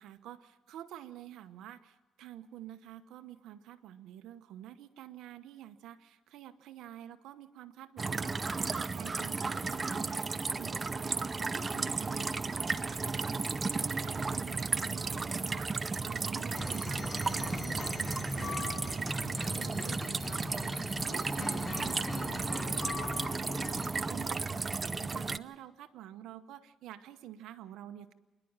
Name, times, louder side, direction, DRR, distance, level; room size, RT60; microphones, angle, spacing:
voice 1, 0.0-28.1, right 11 dB, 85° right, 9 dB, 1.0 m, -49 dB
sound 1, 8.0-25.4, right 4 dB, 30° right, 0.6 m, -34 dB
sound 2, 16.5-23.9, left 3 dB, 25° left, 1.7 m, -40 dB
27.0 x 11.0 x 8.8 m, 1.2 s
cardioid pair, 90°, 0 cm